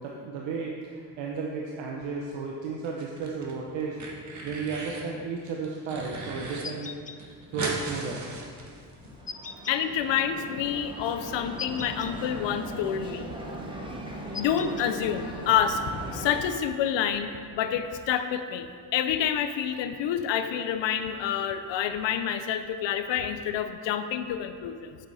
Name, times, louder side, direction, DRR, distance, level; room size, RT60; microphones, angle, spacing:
voice 1, 0.0-4.0 4.4-6.9 7.5-8.3, right 5 dB, 85° right, -1 dB, 1.0 m, -33 dB
sound 1, 2.8-3.5 3.8-5.1 5.5-6.6 6.9-7.0 7.2-9.1, right 2 dB, 40° right, 1.8 m, -37 dB
sound 2, 6.6-7.2 9.3-9.8 11.6-12.1 14.3-14.9, left 5 dB, 20° left, 0.4 m, -38 dB
sound 3, 9.0-16.4, right 1 dB, 10° right, 1.5 m, -39 dB
voice 2, 9.7-13.3 14.3-25.0, left 9 dB, 75° left, 9 dB, 0.8 m, -28 dB
8.0 x 7.9 x 4.1 m, 2.2 s
cardioid pair, 85°, 44 cm